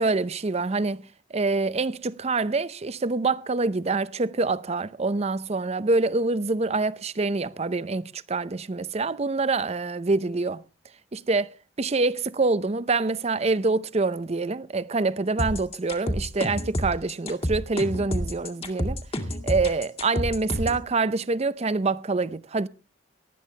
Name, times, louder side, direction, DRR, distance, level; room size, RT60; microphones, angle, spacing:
voice 1, 0.0-10.6 11.1-11.5 11.8-19.0 19.4-22.7, right 3 dB, 35° right, 0.6 m, -26 dB
sound 1, 15.4-20.8, equal, 30° left, 2.1 m, -28 dB
19.0 x 12.5 x 3.3 m
head